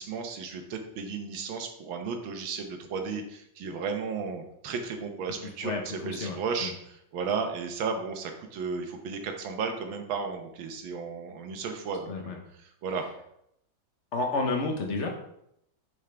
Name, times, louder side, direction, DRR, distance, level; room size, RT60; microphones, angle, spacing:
voice 1, 0.0-5.7 6.1-12.3 12.6-13.0, right 5 dB, 85° right, 5 dB, 1.7 m, -34 dB
voice 2, 5.3-6.7 12.1-12.4 14.1-15.1, left 3 dB, 45° left, 2 dB, 1.1 m, -31 dB
6.3 x 6.0 x 3.4 m, 0.76 s
omnidirectional pair, 2.1 m